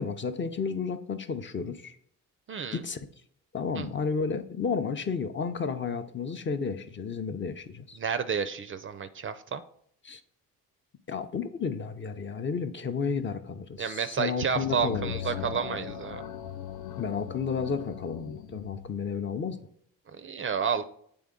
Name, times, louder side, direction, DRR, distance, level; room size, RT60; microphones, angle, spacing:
voice 1, 0.0-2.0 2.7-3.1 3.5-8.0 10.0-10.2 11.1-15.5 17.0-19.6, left 5 dB, 35° left, 8 dB, 0.5 m, -32 dB
voice 2, 2.5-2.8 3.7-3.9 8.0-9.6 13.8-16.2 20.2-20.8, right 6 dB, 35° right, 11 dB, 0.4 m, -30 dB
Thoughtful Atmospheric Rapid Intro, 14.4-19.0, left 10 dB, 90° left, 0.6 m, -39 dB
7.7 x 3.4 x 3.7 m, 0.65 s
cardioid pair, 80°, 36 cm